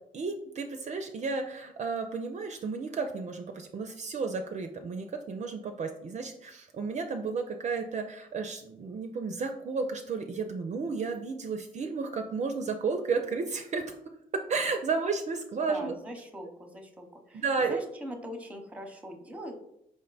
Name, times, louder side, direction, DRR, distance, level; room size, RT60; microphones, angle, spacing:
voice 1, 0.1-13.9 14.5-15.9 17.3-17.8, right 4 dB, 45° right, 5 dB, 0.4 m, -32 dB
voice 2, 15.7-17.4 17.7-19.5, equal, 10° right, 4 dB, 0.8 m, -41 dB
4.8 x 2.1 x 4.0 m, 0.78 s
supercardioid pair, 65°, 16 cm